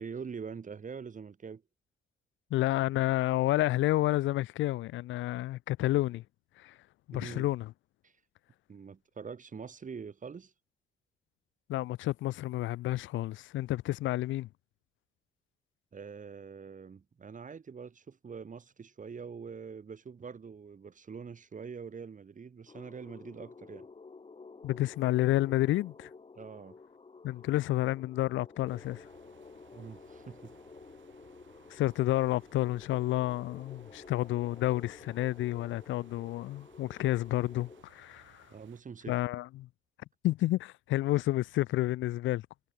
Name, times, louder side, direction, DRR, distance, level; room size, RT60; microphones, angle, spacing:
voice 1, 0.0-1.6 7.1-7.5 8.0-8.2 8.7-10.5 15.9-23.9 26.3-26.8 29.7-30.5 38.5-39.2, right 6 dB, 40° right, 4.9 m, -44 dB
voice 2, 2.5-6.2 6.6-6.8 7.1-7.7 11.7-14.5 24.6-26.1 27.2-29.1 31.7-38.5 39.1-39.7 40.2-42.4, left 16 dB, 80° left, 0.5 m, -30 dB
sound 1, 22.7-37.8, left 4 dB, 30° left, 5.2 m, -52 dB
sound 2, 28.7-38.8, right 11 dB, 70° right, 4.6 m, -62 dB
cardioid pair, 90°, 20 cm